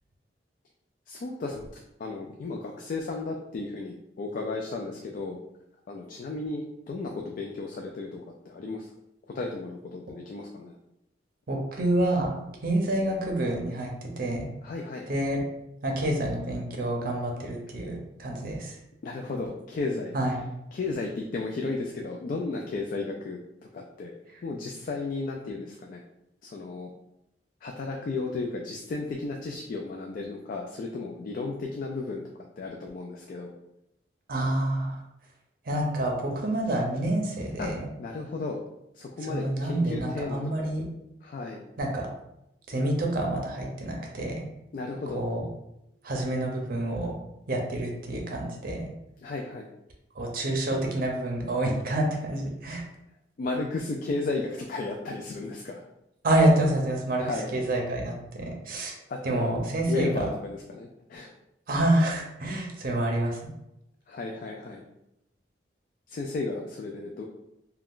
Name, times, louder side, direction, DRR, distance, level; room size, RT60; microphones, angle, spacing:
voice 1, 1.1-1.7 2.0-5.4 5.9-8.2 8.5-8.8 9.4-10.7 14.6-15.1 19.0-20.1 20.7-23.4 23.7-24.1 24.4-26.0 26.5-26.9 27.6-32.2 32.6-33.5 37.6-37.7 38.0-38.6 39.2-39.4 39.7-40.4 41.3-41.6 44.7-45.2 49.2-49.6 53.4-55.7 57.2-57.5 59.1-59.6 59.9-60.3 60.7-61.3 64.1-64.8 66.1-67.3, left 3 dB, 50° left, 1 dB, 0.3 m, -33 dB
voice 2, 11.5-12.3 12.6-14.5 15.1-15.4 15.8-18.8 20.1-20.5 24.3-24.4 34.3-35.0 35.7-37.9 39.2-40.9 41.8-42.1 42.7-44.5 45.1-45.5 46.0-47.2 47.5-48.9 50.1-52.8 56.2-58.9 59.2-60.3 61.7-63.4, right 1 dB, 55° right, 0 dB, 0.6 m, -27 dB
2.4 x 2.3 x 3.5 m, 0.83 s
head